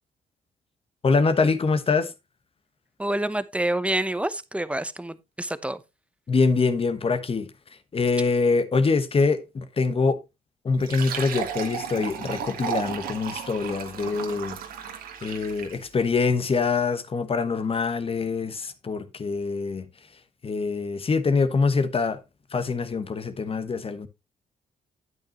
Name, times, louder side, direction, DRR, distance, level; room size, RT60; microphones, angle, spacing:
voice 1, 1.0-2.1 6.3-7.5 7.9-10.2 10.6-14.6 15.2-19.8 20.4-22.2 22.5-24.1, left 4 dB, 40° left, 1.2 m, -24 dB
voice 2, 3.0-5.8, right 1 dB, 10° right, 0.9 m, -27 dB
Fill (with liquid), 10.7-15.9, right 7 dB, 80° right, 1.6 m, -34 dB
9.3 x 8.6 x 3.0 m
cardioid pair, 70°, 15 cm